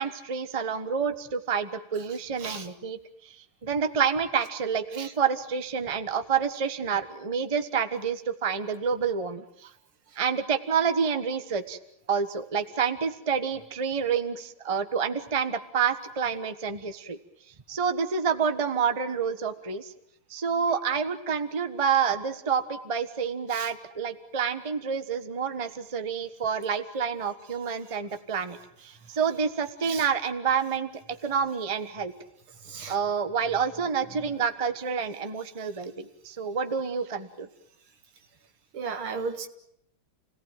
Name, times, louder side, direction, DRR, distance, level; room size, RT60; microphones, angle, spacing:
voice 1, 0.0-9.7 10.2-11.8 12.1-17.2 17.7-19.9 20.3-32.1 32.9-37.5, right 6 dB, 20° right, 9 dB, 1.1 m, -28 dB
voice 2, 32.6-32.9 38.7-39.5, right 5 dB, 75° right, 7 dB, 2.6 m, -35 dB
29.0 x 18.5 x 9.2 m, 0.76 s
omnidirectional pair, 2.3 m